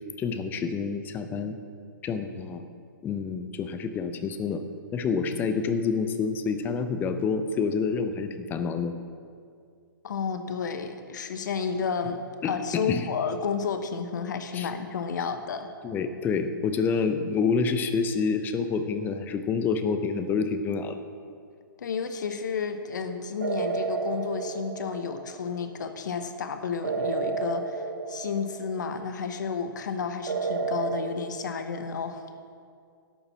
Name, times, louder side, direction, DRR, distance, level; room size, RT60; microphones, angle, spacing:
voice 1, 0.2-1.6 2.0-2.6 3.0-4.6 4.9-8.9 12.4-13.1 14.5-14.7 15.8-21.0, left 5 dB, 15° left, 8 dB, 0.7 m, -28 dB
voice 2, 10.0-15.7 21.8-32.3, left 6 dB, 55° left, 8 dB, 1.0 m, -31 dB
sound 1, 23.4-25.5 26.8-28.9 30.3-31.0, right 4 dB, 65° right, 1.5 m, -31 dB
11.5 x 7.0 x 7.1 m, 2.3 s
figure-of-eight pair, 125°, 11 cm